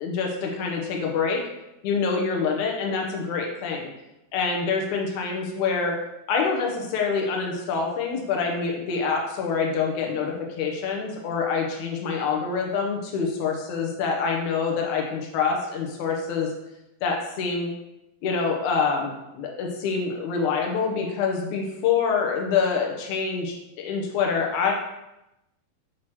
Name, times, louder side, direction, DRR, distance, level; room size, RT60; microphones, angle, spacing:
voice 1, 0.0-1.4 1.8-3.9 4.3-5.9 6.3-16.5 17.0-17.7 18.2-24.7, left 5 dB, 70° left, 0 dB, 2.1 m, -26 dB
7.7 x 3.0 x 4.4 m, 0.91 s
omnidirectional pair, 4.2 m